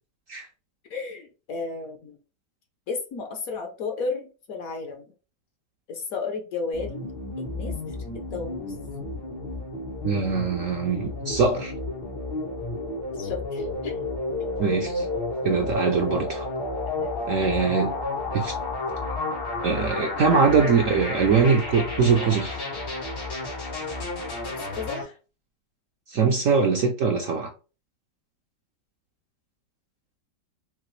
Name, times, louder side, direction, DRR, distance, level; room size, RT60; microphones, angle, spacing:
voice 1, 0.9-2.2 2.9-5.0 5.9-7.1 7.4-7.7 8.3-8.7 13.2-14.0 14.4-14.5 17.4-17.5 24.5-25.2, left 4 dB, 60° left, 1.1 m, -33 dB
sound 1, 6.7-25.0, left 2 dB, 85° left, 2.6 m, -31 dB
voice 2, 10.0-11.7 14.6-15.1 15.4-16.5 17.3-17.9 18.3-18.5 19.6-22.6 26.1-27.5, right 5 dB, 65° right, 0.8 m, -22 dB
5.8 x 2.5 x 3.1 m
omnidirectional pair, 1.9 m